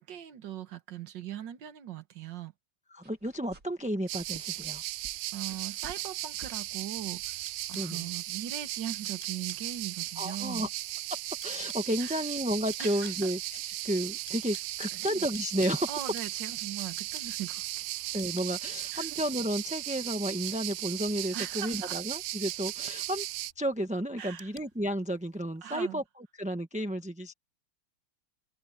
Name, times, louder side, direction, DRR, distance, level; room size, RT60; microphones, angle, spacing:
voice 1, 0.0-2.5 5.3-10.7 12.0-12.2 12.8-13.3 14.9-15.3 15.9-17.8 18.9-19.1 21.3-22.0 24.2-24.5 25.6-26.0, right 10 dB, 60° right, 1.8 m, -40 dB
voice 2, 2.9-4.8 7.7-8.0 10.2-10.7 11.4-13.4 13.8-15.9 18.1-23.2 23.6-26.0 26.4-27.3, equal, 5° right, 0.7 m, -32 dB
sound 1, 3.0-3.9 4.2-6.2 6.4-6.6, right 3 dB, 40° right, 3.3 m, -52 dB
sound 2, 4.1-23.5, right 16 dB, 75° right, 1.3 m, -36 dB
sound 3, 6.8-25.6, left 3 dB, 25° left, 4.5 m, -57 dB
omnidirectional pair, 2.4 m